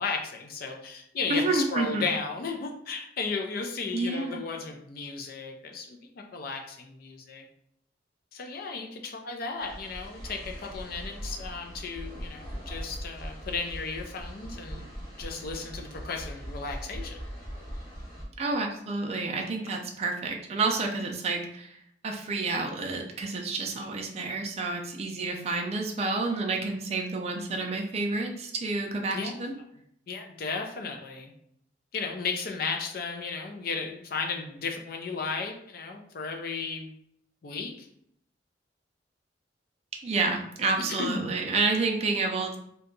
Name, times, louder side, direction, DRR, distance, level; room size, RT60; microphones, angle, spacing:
voice 1, 0.0-7.4 8.3-14.9 15.2-17.2 29.1-29.4 30.1-31.3 31.9-36.9 37.4-37.9 41.0-41.3, left 4 dB, 55° left, 3 dB, 0.4 m, -34 dB
voice 2, 1.3-2.0 3.9-4.5 18.4-21.8 22.0-29.5 40.0-42.6, right 3 dB, 35° right, 1 dB, 0.4 m, -29 dB
sound 1, 9.6-18.2, equal, 25° left, 1.2 m, -40 dB
2.7 x 2.2 x 3.8 m, 0.71 s
head